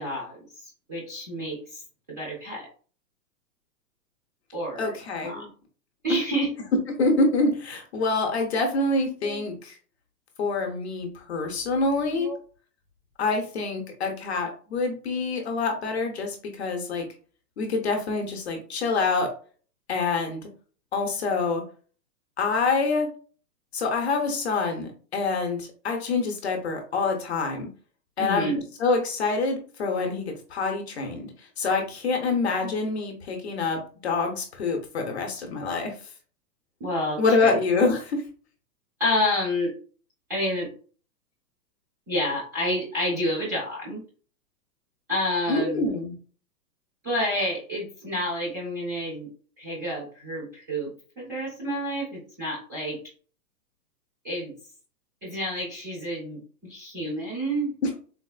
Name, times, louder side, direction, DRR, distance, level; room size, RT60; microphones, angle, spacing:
voice 1, 0.0-1.8 2.1-2.7 4.5-4.9 5.2-5.4 6.0-6.5 9.2-9.5 12.1-12.4 15.1-15.2 28.2-28.6 32.6-32.7 36.8-37.6 39.0-39.7 40.3-40.7 42.1-44.0 45.1-45.9 47.0-49.3 49.6-53.0 54.2-54.5 55.2-57.8, equal, 10° right, -8 dB, 0.6 m, -29 dB
voice 2, 4.8-5.5 7.0-9.8 10.4-12.3 13.2-17.1 17.6-19.3 19.9-20.5 20.9-21.6 22.4-23.1 23.7-27.7 28.2-28.5 28.8-31.3 31.6-35.9 37.2-38.2 45.5-46.1, left 3 dB, 40° left, 3 dB, 0.6 m, -26 dB
4.0 x 2.3 x 2.3 m, 0.41 s
hypercardioid pair, 170°, 48 cm